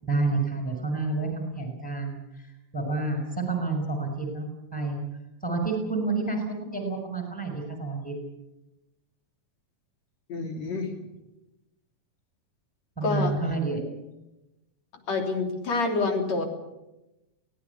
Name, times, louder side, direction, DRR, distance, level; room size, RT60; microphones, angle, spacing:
voice 1, 0.0-2.5 2.7-5.0 5.4-8.1 13.0-13.8, right 3 dB, ahead, 2 dB, 5.6 m, -29 dB
voice 2, 10.3-10.9 13.0-13.3 15.1-16.5, left 3 dB, 55° left, 4 dB, 4.2 m, -27 dB
23.5 x 18.0 x 8.4 m, 0.96 s
omnidirectional pair, 3.8 m